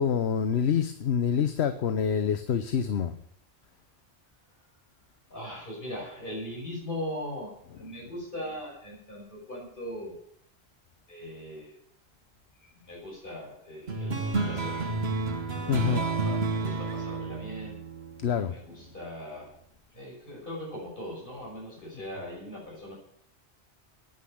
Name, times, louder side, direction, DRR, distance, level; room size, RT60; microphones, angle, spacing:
voice 1, 0.0-3.2 15.5-16.0 18.2-18.8, left 7 dB, 90° left, 10 dB, 1.1 m, -27 dB
voice 2, 5.3-10.2 11.1-11.8 12.6-14.9 15.5-17.8 18.5-19.5 19.9-22.9, left 1 dB, 55° left, -3 dB, 5.9 m, -40 dB
sound 1, 13.9-18.8, right 3 dB, 80° right, 1.5 m, -31 dB
10.0 x 9.3 x 9.9 m, 0.70 s
omnidirectional pair, 1.1 m